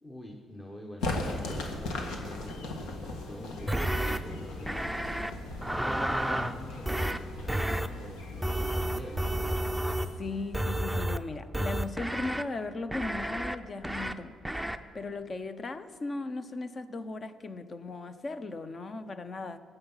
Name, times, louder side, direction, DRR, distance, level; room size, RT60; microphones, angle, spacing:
voice 1, 0.0-5.0 5.7-9.6, left 1 dB, 20° left, 1 dB, 1.2 m, -46 dB
sound 1, 1.0-10.8, left 2 dB, 90° left, 1.5 m, -39 dB
sound 2, 3.7-4.2 4.7-5.3 5.6-6.5 6.9-7.2 7.5-7.9 8.4-10.1 10.5-11.2 11.5-12.4 12.9-13.6 13.8-14.1 14.5-14.8, right 1 dB, ahead, 0.6 m, -30 dB
voice 2, 10.2-14.4 14.9-19.6, left 3 dB, 35° left, 11 dB, 0.8 m, -37 dB
16.5 x 8.0 x 5.6 m, 2.1 s
cardioid pair, 90°, 0 cm